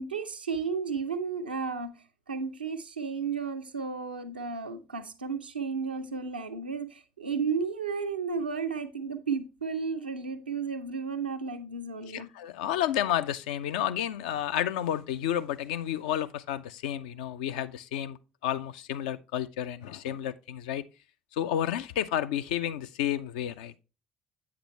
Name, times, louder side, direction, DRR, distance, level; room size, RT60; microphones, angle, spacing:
voice 1, 0.0-12.3, right 5 dB, 85° right, 0.5 m, -33 dB
voice 2, 12.1-18.2 18.4-20.8 21.3-23.8, left 11 dB, 70° left, 0.4 m, -31 dB
8.4 x 6.0 x 3.1 m
figure-of-eight pair, 50°, 5 cm